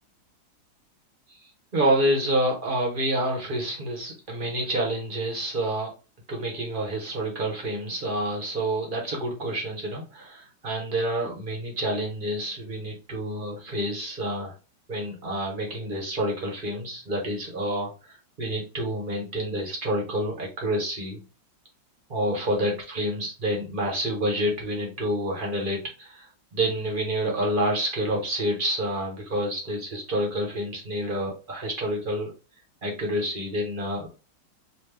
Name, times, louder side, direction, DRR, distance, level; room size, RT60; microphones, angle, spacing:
voice 1, 1.3-5.9 6.3-14.5 14.9-21.2 22.1-32.3 32.8-34.1, right 1 dB, 35° right, 0 dB, 1.1 m, -28 dB
4.1 x 2.7 x 3.3 m, 0.32 s
omnidirectional pair, 2.1 m